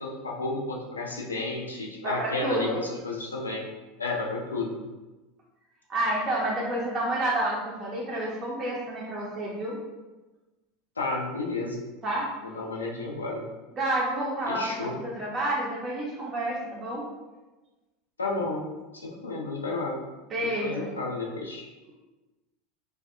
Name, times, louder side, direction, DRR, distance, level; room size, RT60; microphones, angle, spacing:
voice 1, 0.0-3.7 4.0-4.8 11.0-11.9 12.4-13.5 14.5-15.0 18.2-18.7 18.9-20.0 20.4-21.7, left 2 dB, 80° left, -2 dB, 0.4 m, -32 dB
voice 2, 2.0-2.8 5.9-9.8 12.0-12.3 13.8-17.0 20.3-20.9, right 1 dB, 30° right, -5 dB, 0.5 m, -29 dB
2.6 x 2.1 x 2.4 m, 1.2 s
figure-of-eight pair, 80°, 0 cm